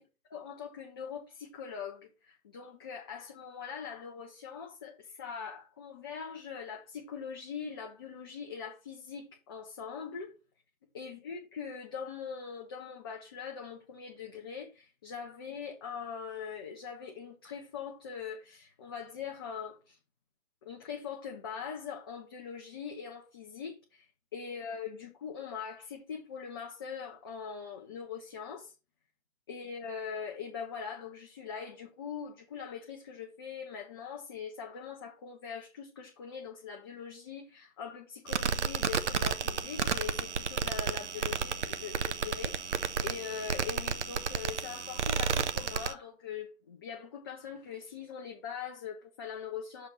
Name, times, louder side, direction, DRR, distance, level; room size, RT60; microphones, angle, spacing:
voice 1, 0.3-10.3 10.9-20.0 20.6-28.7 29.5-49.9, left 6 dB, 20° left, 0.6 m, -42 dB
sound 1, 38.3-45.9, right 6 dB, 60° right, 0.7 m, -32 dB
6.5 x 3.3 x 5.5 m
figure-of-eight pair, 135°, 41 cm